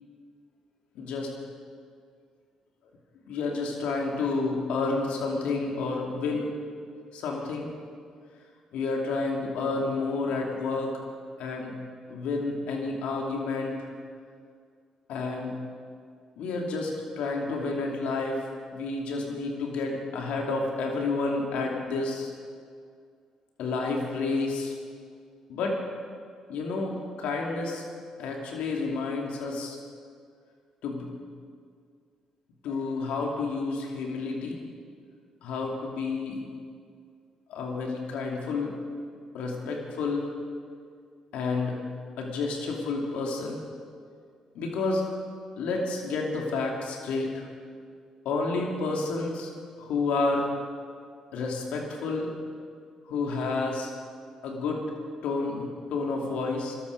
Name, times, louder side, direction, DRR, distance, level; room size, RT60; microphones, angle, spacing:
voice 1, 0.9-1.3 3.3-6.5 7.1-7.7 8.7-10.9 11.4-11.7 12.1-13.9 15.1-15.5 16.4-18.4 18.7-22.3 23.6-24.7 25.5-25.8 26.5-27.8 28.2-29.8 30.8-31.1 32.6-34.6 35.4-36.4 37.5-38.7 39.3-40.3 41.3-41.8 42.2-43.6 44.5-45.0 45.6-47.5 48.2-49.5 49.8-50.5 51.3-52.3 53.1-53.9 54.4-54.8 55.2-56.7, left 3 dB, 75° left, 0 dB, 2.7 m, -30 dB
20.5 x 13.0 x 5.2 m, 2.1 s
hypercardioid pair, 50°, 2 cm